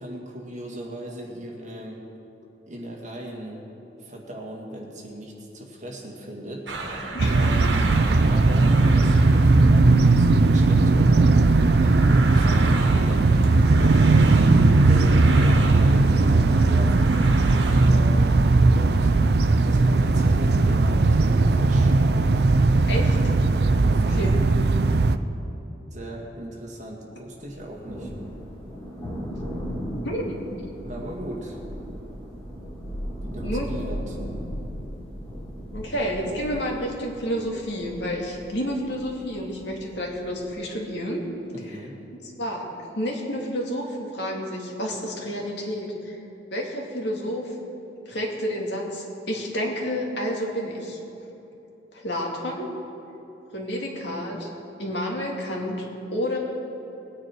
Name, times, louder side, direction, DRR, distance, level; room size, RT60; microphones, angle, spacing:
voice 1, 0.0-2.0 2.7-3.6 4.0-7.9 8.2-13.4 14.7-17.2 17.9-18.4 18.7-19.1 19.6-22.0 23.8-24.2 25.9-28.1 30.8-31.6 33.2-34.2 41.5-41.9, right 1 dB, 40° right, -2 dB, 2.0 m, -38 dB
sound 1, 6.7-17.9, right 3 dB, 80° right, 1.6 m, -34 dB
voice 2, 7.1-7.5 22.9-23.2 24.2-24.3 30.0-30.6 33.4-33.7 35.7-41.2 42.4-42.7 42.9-46.2 46.5-47.5 48.1-51.0 51.9-52.7 53.5-54.5 54.8-56.4, equal, 70° left, -1 dB, 2.2 m, -30 dB
sound 2, 7.2-25.2, right 3 dB, 60° right, 0.5 m, -18 dB
Thunder, 27.4-40.6, equal, 20° left, 3.5 m, -36 dB
20.5 x 9.3 x 4.5 m, 2.9 s
head